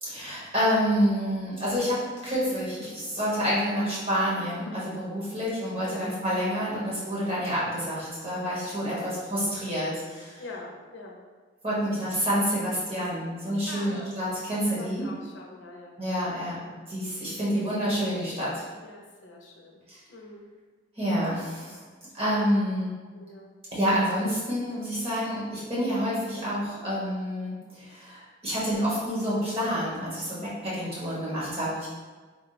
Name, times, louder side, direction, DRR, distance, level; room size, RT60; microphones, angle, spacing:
voice 1, 0.0-10.4 11.6-15.1 16.0-16.6 16.9-18.6 19.9-20.0 21.0-21.8 22.1-22.9 23.7-31.9, equal, 30° right, -8 dB, 1.3 m, -28 dB
voice 2, 8.9-9.2 10.4-11.2 12.1-12.2 13.7-14.1 14.7-15.9 18.8-19.8 20.1-20.5 23.1-23.5, left 2 dB, 80° left, 0 dB, 0.6 m, -44 dB
3.6 x 2.2 x 4.0 m, 1.4 s
head